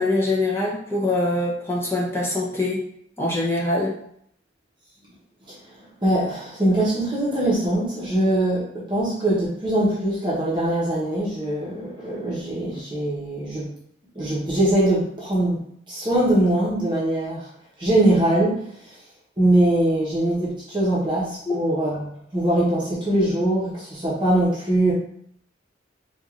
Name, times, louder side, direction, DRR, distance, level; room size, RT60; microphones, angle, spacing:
voice 1, 0.0-2.9 3.2-4.0 21.5-21.6, left 2 dB, 15° left, -6 dB, 0.7 m, -23 dB
voice 2, 5.5-13.7 14.1-15.6 15.9-17.5 17.8-18.6 19.4-24.9, right 1 dB, 25° right, -8 dB, 1.0 m, -22 dB
4.5 x 2.5 x 2.5 m, 0.68 s
head